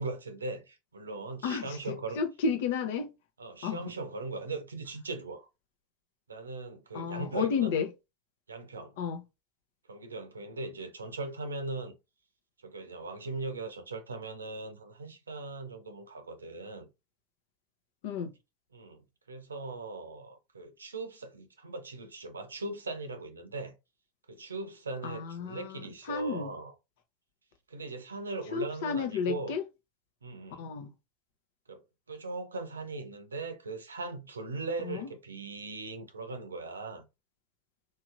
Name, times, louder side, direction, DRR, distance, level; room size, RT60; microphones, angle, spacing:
voice 1, 0.0-2.2 3.4-5.5 6.3-7.7 8.5-9.0 9.9-12.0 12.6-16.9 18.7-19.0 19.3-23.8 24.3-26.7 27.7-29.5 30.2-30.6 31.7-31.8 32.1-37.1, right 3 dB, 85° right, 0.6 m, -39 dB
voice 2, 1.4-3.1 3.6-3.9 6.9-7.9 9.0-9.2 18.0-18.3 25.0-26.5 28.5-29.6 30.6-30.9 34.8-35.1, left 6 dB, 65° left, 0.7 m, -32 dB
3.1 x 2.8 x 2.5 m
figure-of-eight pair, 85°, 0 cm